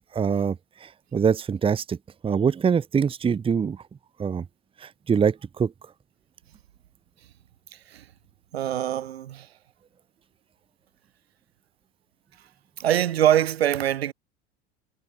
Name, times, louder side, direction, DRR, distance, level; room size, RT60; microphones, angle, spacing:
voice 1, 0.1-0.6 0.8-2.0 2.2-3.8 4.2-4.4 4.8-5.7, right 6 dB, 15° right, 1.1 m, -24 dB
voice 2, 8.5-9.5 12.8-14.1, right 11 dB, 65° right, 1.7 m, -23 dB
figure-of-eight pair, 80°, 33 cm